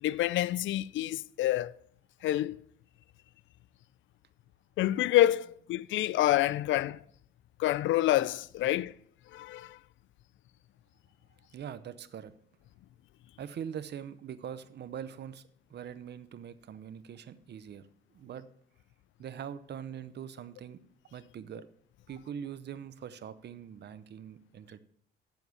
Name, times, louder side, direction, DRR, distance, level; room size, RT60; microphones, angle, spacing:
voice 1, 0.0-1.7 2.2-2.6 4.8-7.0 7.6-8.9 9.3-9.8, left 14 dB, 75° left, 0.4 m, -27 dB
voice 2, 11.5-12.3 13.4-15.4 15.7-17.9 18.1-18.5 19.2-20.8 21.1-21.7 22.1-24.8, right 8 dB, 60° right, 0.8 m, -42 dB
7.8 x 7.2 x 7.1 m
cardioid pair, 90°, 20 cm